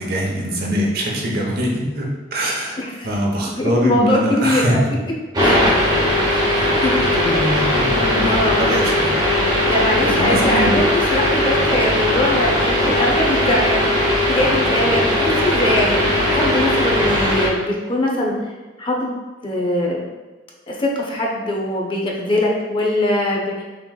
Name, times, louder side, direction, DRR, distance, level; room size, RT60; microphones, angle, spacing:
voice 1, 0.0-2.8 3.0-5.0 6.1-6.3 6.9-9.2 10.0-10.8, equal, 60° right, -2 dB, 1.0 m, -22 dB
voice 2, 2.8-3.1 3.5-4.8 5.4-5.6 6.3-6.5 6.8-7.4 8.2-8.6 9.5-10.8 11.1-13.8 14.3-18.4 18.8-19.1 19.4-20.0 20.7-23.6, left 1 dB, 30° left, -1 dB, 0.7 m, -22 dB
sound 1, 5.3-17.5, left 1 dB, 25° right, 1.0 m, -18 dB
6.0 x 3.1 x 2.3 m, 1.3 s
head